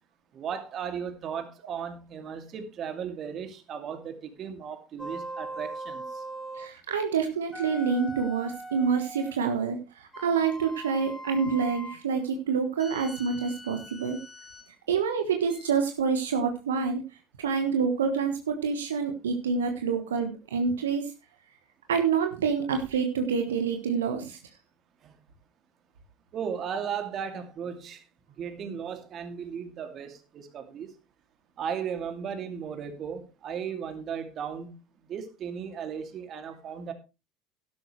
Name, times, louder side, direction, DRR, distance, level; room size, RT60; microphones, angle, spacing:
voice 1, 0.3-6.2 25.0-25.1 26.3-28.0 28.4-30.9 31.6-34.7 35.1-36.9, right 7 dB, 45° right, 2.6 m, -36 dB
sound 1, 5.0-6.8 7.5-9.4 10.1-12.1 12.8-14.7 15.5-15.7, right 1 dB, 5° right, 3.7 m, -41 dB
voice 2, 6.5-14.2 14.9-17.0 17.4-21.1 21.9-24.4, right 6 dB, 85° right, 1.4 m, -27 dB
12.0 x 11.5 x 3.2 m
hypercardioid pair, 75°, 0 cm